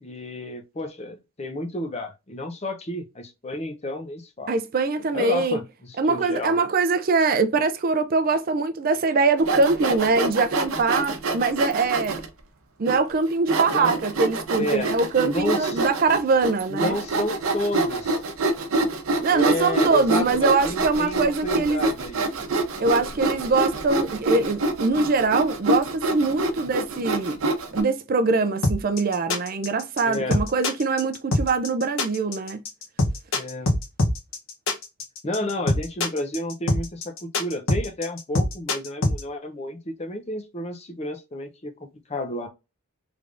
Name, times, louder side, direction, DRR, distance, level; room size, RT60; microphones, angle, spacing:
voice 1, 0.0-4.5 5.1-6.7 13.7-14.0 14.5-14.9 15.2-15.8 16.7-18.2 19.3-22.2 22.7-23.4 30.0-30.4 33.3-33.8 35.2-42.5, left 1 dB, 30° left, 0.6 m, -31 dB
voice 2, 4.5-5.6 6.0-12.2 12.8-17.0 19.2-21.8 22.8-27.4 27.7-32.6, right 3 dB, 45° right, 0.4 m, -23 dB
Sawing, 9.4-12.3 12.9-13.0 13.5-27.8, right 2 dB, 80° right, 0.7 m, -26 dB
sound 1, 28.6-39.2, left 2 dB, 75° left, 0.9 m, -23 dB
3.4 x 3.3 x 2.5 m
head